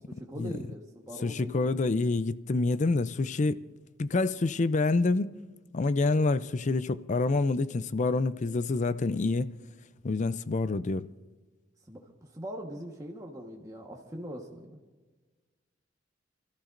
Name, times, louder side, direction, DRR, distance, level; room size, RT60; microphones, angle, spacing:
voice 1, 0.2-1.8 11.9-12.0 12.3-14.8, equal, 15° right, 1.3 m, -41 dB
voice 2, 1.2-3.6 4.0-5.3 5.7-9.6 10.0-11.1, left 3 dB, 40° left, 0.5 m, -27 dB
28.5 x 14.0 x 2.6 m
head